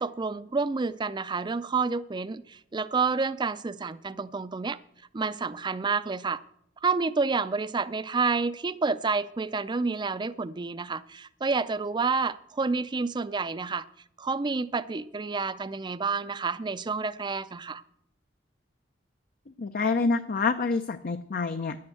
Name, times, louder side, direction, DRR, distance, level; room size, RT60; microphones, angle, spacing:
voice 1, 0.0-4.8 5.1-6.4 6.8-13.9 14.2-17.8, right 4 dB, 25° right, 0.5 m, -29 dB
voice 2, 19.6-21.8, left 4 dB, 50° left, 0.5 m, -27 dB
11.0 x 8.6 x 7.8 m
head